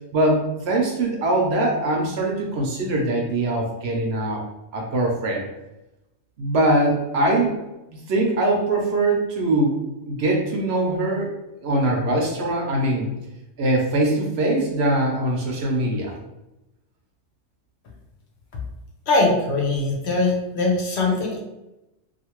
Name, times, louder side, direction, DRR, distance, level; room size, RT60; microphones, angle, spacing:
voice 1, 0.1-4.4 4.7-5.4 6.4-7.6 7.9-9.7 10.1-11.4 11.6-13.1 13.6-16.1, right 1 dB, 65° right, -1 dB, 0.8 m, -22 dB
voice 2, 19.1-21.4, left 2 dB, 65° left, -1 dB, 0.8 m, -21 dB
2.5 x 2.4 x 2.9 m, 0.96 s
omnidirectional pair, 1.3 m